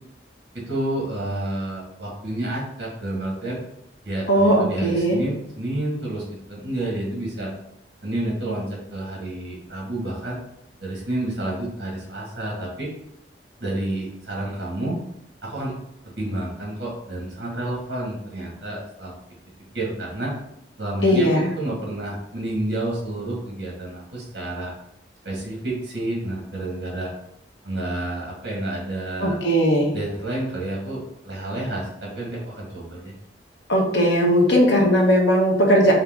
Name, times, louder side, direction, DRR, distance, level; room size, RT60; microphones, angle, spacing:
voice 1, 0.5-3.6 4.0-7.5 8.0-10.4 10.8-12.9 13.6-15.0 15.4-15.7 16.0-19.1 19.7-20.4 20.8-24.7 25.2-27.1 27.6-29.4 29.9-33.1, right 1 dB, 65° right, -3 dB, 1.5 m, -29 dB
voice 2, 4.3-5.2 21.0-21.5 29.2-29.9 33.7-35.9, equal, 75° left, 0 dB, 1.1 m, -18 dB
4.9 x 2.8 x 3.6 m, 0.77 s
head